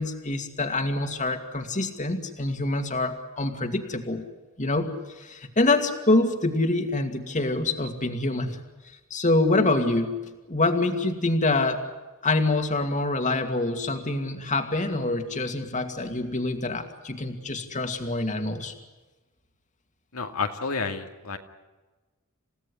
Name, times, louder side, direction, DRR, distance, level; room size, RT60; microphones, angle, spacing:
voice 1, 0.0-4.2 4.6-8.6 9.1-10.2 10.5-11.8 12.2-18.7, left 2 dB, 35° left, 6 dB, 2.4 m, -26 dB
voice 2, 20.1-21.4, left 4 dB, 80° left, 4 dB, 2.5 m, -30 dB
29.5 x 17.0 x 9.8 m, 1.2 s
head